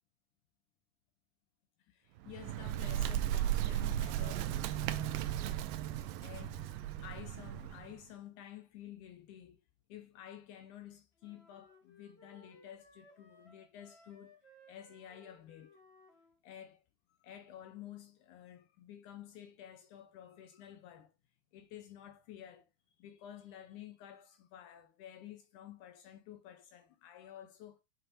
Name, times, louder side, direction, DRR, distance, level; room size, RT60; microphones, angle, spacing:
voice 1, 1.8-5.2 6.2-9.6 9.9-14.4 14.7-15.8 16.4-16.8 17.2-21.1 21.5-22.7 23.0-27.8, left 11 dB, 80° left, 1.8 m, -52 dB
Bird, 2.2-7.9, right 12 dB, 80° right, 2.1 m, -35 dB
sound 1, 11.2-16.4, left 2 dB, 40° left, 0.9 m, -62 dB
8.9 x 4.3 x 2.6 m
omnidirectional pair, 4.2 m